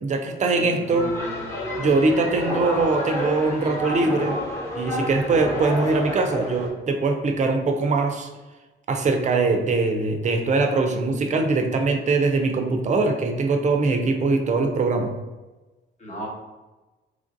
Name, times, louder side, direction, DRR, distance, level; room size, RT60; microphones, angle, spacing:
voice 1, 0.0-1.1 1.8-4.4 4.7-8.3 8.9-15.1, right 3 dB, 35° right, 5 dB, 0.4 m, -22 dB
voice 2, 0.6-1.6 16.0-16.3, right 1 dB, 35° left, -2 dB, 1.0 m, -35 dB
sound 1, 0.9-6.7, left 1 dB, 15° left, 1.0 m, -30 dB
3.1 x 2.5 x 2.5 m, 1.2 s
cardioid pair, 90°, 20 cm